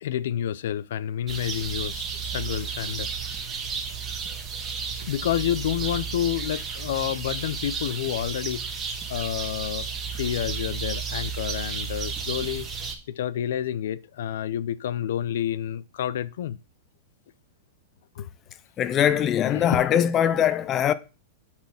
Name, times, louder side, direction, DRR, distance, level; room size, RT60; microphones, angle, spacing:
voice 1, 0.0-3.1 3.3-3.4 5.0-8.6 9.1-12.7 13.1-16.6 18.2-18.3 19.4-19.8, left 10 dB, 70° left, 0.5 m, -29 dB
sound 1, 1.3-12.9, right 6 dB, 15° right, 1.3 m, -32 dB
voice 2, 18.8-20.9, left 9 dB, 20° left, 0.4 m, -21 dB
9.6 x 4.3 x 5.8 m
supercardioid pair, 165°, 0 cm